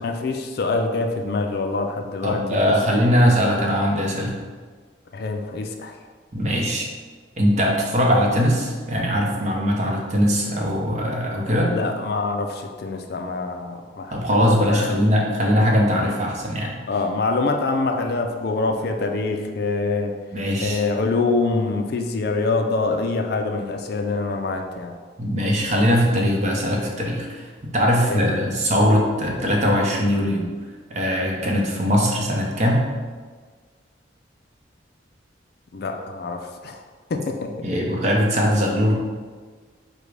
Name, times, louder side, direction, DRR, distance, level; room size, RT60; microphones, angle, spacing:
voice 1, 0.0-2.7 5.1-6.0 11.6-14.1 14.5-15.0 16.9-20.1 20.6-24.9 28.1-28.4 35.7-36.8 37.1-37.5, left 3 dB, 55° left, 4 dB, 0.4 m, -25 dB
voice 2, 2.2-4.4 6.3-6.9 7.4-11.8 14.1-16.8 20.3-20.8 25.2-30.5 30.9-32.9 37.6-38.9, equal, 40° right, -1 dB, 0.7 m, -21 dB
4.9 x 2.2 x 4.8 m, 1.5 s
head